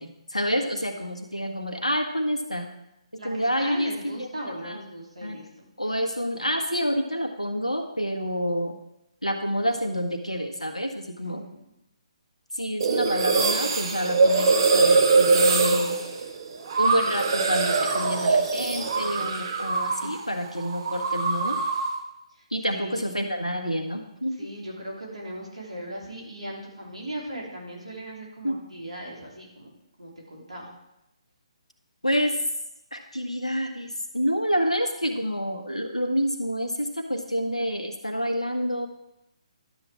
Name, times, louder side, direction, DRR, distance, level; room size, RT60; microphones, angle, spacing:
voice 1, 0.0-2.7 3.2-4.3 4.6-4.8 5.2-5.4 5.8-8.7 9.2-11.5 12.5-16.0 16.8-21.6 22.5-24.3 28.4-28.6 32.0-32.4 32.9-38.9, equal, 85° left, 4 dB, 1.4 m, -28 dB
voice 2, 3.2-6.1 11.2-11.6 22.3-22.4 22.7-23.2 24.4-29.7 30.0-30.7, right 1 dB, 75° right, -2 dB, 3.3 m, -38 dB
sound 1, 12.8-20.2 20.5-22.0, right 4 dB, 45° right, 1.1 m, -23 dB
12.0 x 7.4 x 3.6 m, 0.86 s
figure-of-eight pair, 135°, 3 cm